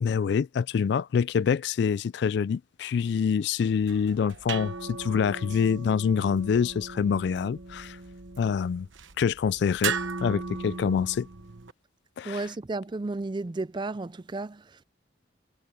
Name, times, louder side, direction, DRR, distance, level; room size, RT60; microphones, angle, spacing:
voice 1, 0.0-8.0 8.4-8.9 9.2-11.3 12.2-12.4, left 6 dB, 60° left, 0.3 m, -26 dB
sound 1, 3.7-11.7, right 5 dB, 85° right, 1.2 m, -37 dB
voice 2, 12.2-14.8, right 2 dB, 25° right, 0.4 m, -33 dB
head